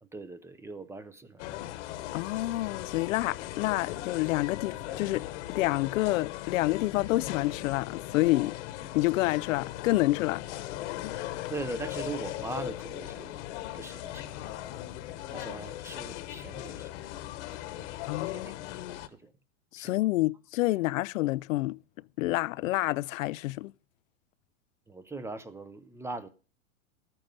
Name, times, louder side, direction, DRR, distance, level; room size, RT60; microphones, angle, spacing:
voice 1, 0.0-1.5 11.5-13.4 13.7-14.4 15.3-16.9 17.8-17.9 18.3-19.3 19.8-20.0 24.9-26.3, right 3 dB, 5° right, 0.6 m, -40 dB
sound 1, 1.4-19.1, left 14 dB, 60° left, 1.2 m, -38 dB
voice 2, 2.1-8.6 8.9-10.4 11.0-11.5 18.1-19.0 19.7-21.8 22.2-23.7, left 18 dB, 80° left, 0.5 m, -28 dB
13.0 x 9.0 x 5.4 m
supercardioid pair, 130°, 39 cm